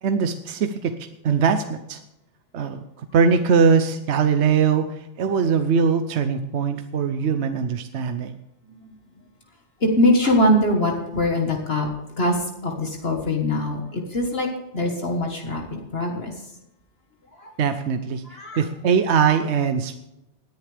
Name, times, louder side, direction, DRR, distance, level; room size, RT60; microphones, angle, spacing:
voice 1, 0.0-0.9 1.2-2.0 2.5-8.3 17.6-18.2 18.6-20.0, right 6 dB, 65° right, 8 dB, 1.0 m, -21 dB
voice 2, 9.8-11.9 12.2-14.5 14.7-16.3 17.4-17.5 18.2-18.6, left 1 dB, 55° left, 1 dB, 1.8 m, -22 dB
18.5 x 10.5 x 3.4 m, 0.87 s
omnidirectional pair, 1.3 m